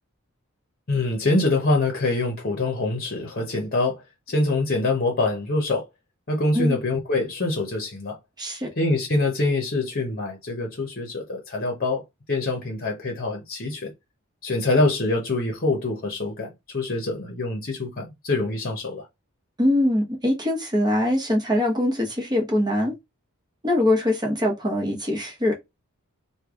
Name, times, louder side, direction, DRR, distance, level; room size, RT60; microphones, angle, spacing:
voice 1, 0.9-5.8 6.3-8.2 8.8-12.0 12.3-13.9 14.4-19.1, left 2 dB, 45° left, 0.9 m, -25 dB
voice 2, 8.4-8.7 19.6-22.9 23.6-25.5, left 1 dB, 20° right, 1.1 m, -23 dB
3.2 x 2.3 x 3.6 m
head